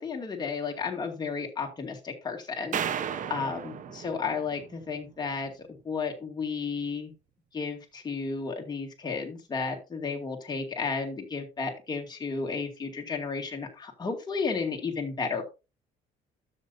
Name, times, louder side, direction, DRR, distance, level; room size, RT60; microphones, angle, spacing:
voice 1, 0.0-5.5 5.8-7.1 7.5-15.4, left 5 dB, 25° left, 2 dB, 2.4 m, -33 dB
sound 1, 2.7-5.1, right 8 dB, 50° right, 0.9 m, -34 dB
12.5 x 6.9 x 2.7 m, 0.28 s
cardioid pair, 110°, 17 cm